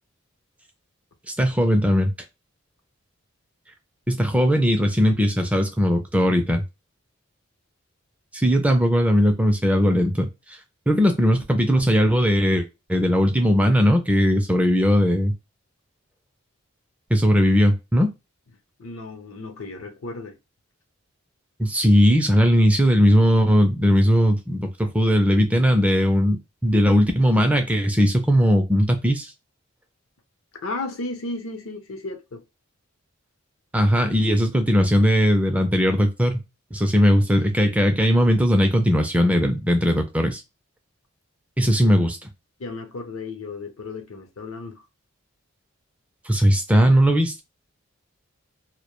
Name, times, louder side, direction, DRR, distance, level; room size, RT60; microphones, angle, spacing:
voice 1, 1.3-2.1 4.1-6.6 8.3-10.6 10.9-15.3 17.1-18.1 21.6-29.3 33.7-36.4 36.7-40.4 41.6-42.2 46.3-47.4, equal, 5° right, 0.3 m, -19 dB
voice 2, 18.8-20.4 30.6-32.4 41.8-41.9 42.6-44.8, left 3 dB, 75° left, 0.6 m, -34 dB
2.1 x 2.1 x 2.9 m
head